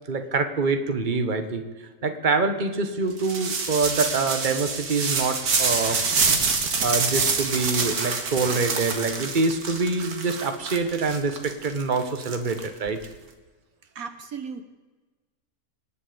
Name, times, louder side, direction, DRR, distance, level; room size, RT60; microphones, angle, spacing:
voice 1, 0.1-1.7 2.0-6.0 6.8-13.0, right 4 dB, 35° right, 8 dB, 1.4 m, -25 dB
sound 1, 3.2-13.1, right 4 dB, 90° right, 2.1 m, -26 dB
voice 2, 13.9-14.6, right 6 dB, 70° right, 9 dB, 1.4 m, -35 dB
25.5 x 9.9 x 5.2 m, 1.3 s
omnidirectional pair, 1.6 m